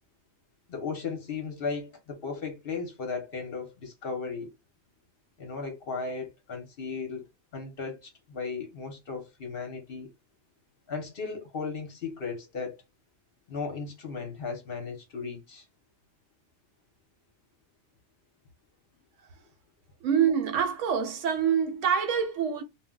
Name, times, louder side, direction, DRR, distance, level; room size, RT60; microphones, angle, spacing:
voice 1, 0.7-4.5 5.4-7.2 7.5-10.1 10.9-12.8 13.5-15.7, left 5 dB, 50° left, 0.8 m, -36 dB
voice 2, 20.0-22.6, right 7 dB, 70° right, 1.0 m, -26 dB
2.3 x 2.1 x 3.6 m
omnidirectional pair, 1.4 m